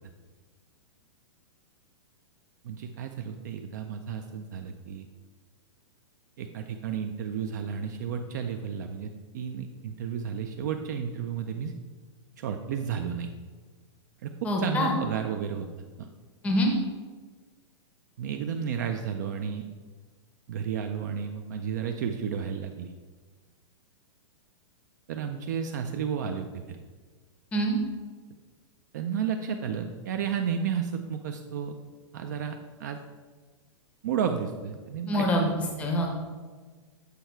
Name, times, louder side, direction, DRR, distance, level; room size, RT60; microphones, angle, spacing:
voice 1, 2.6-5.1 6.4-11.7 12.4-13.3 14.2-14.3 14.6-15.7 16.0-16.1 18.2-19.6 20.5-22.9 25.1-26.8 28.9-31.8 32.1-33.0 34.0-35.6, right 7 dB, 35° right, 5 dB, 0.4 m, -32 dB
voice 2, 14.4-15.0 16.4-16.7 27.5-27.8 35.1-35.5 35.8-36.1, equal, 10° left, 1 dB, 0.7 m, -25 dB
8.3 x 4.4 x 4.5 m, 1.4 s
hypercardioid pair, 170°, 16 cm